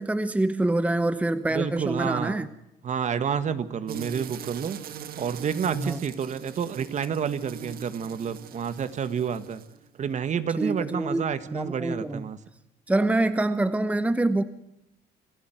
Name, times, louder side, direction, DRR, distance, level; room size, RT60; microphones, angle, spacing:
voice 1, 0.0-2.5 5.7-6.0 10.6-12.2 12.9-14.4, right 2 dB, 10° right, 12 dB, 1.0 m, -26 dB
voice 2, 1.5-2.5 2.8-4.8 5.2-9.6 10.0-12.4, right 7 dB, 45° right, 12 dB, 1.6 m, -29 dB
sound 1, 3.9-9.9, right 9 dB, 60° right, 1.7 m, -41 dB
27.5 x 14.5 x 9.3 m, 0.84 s
cardioid pair, 110°, 17 cm